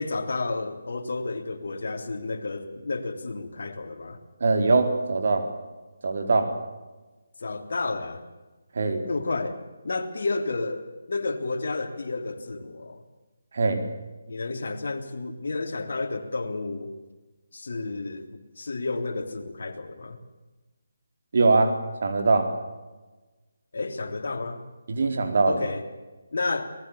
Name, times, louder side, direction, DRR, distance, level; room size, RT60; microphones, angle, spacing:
voice 1, 0.0-4.2 7.4-8.2 9.0-13.0 14.3-17.0 17.5-20.2 23.7-24.6 25.5-25.8 26.3-26.7, left 3 dB, 65° left, 5 dB, 3.3 m, -31 dB
voice 2, 4.4-5.5 6.0-6.5 8.7-9.0 13.5-13.8 21.3-22.5 24.9-25.6, right 3 dB, 55° right, 5 dB, 4.3 m, -22 dB
24.0 x 19.5 x 7.1 m, 1.2 s
figure-of-eight pair, 155°, 0 cm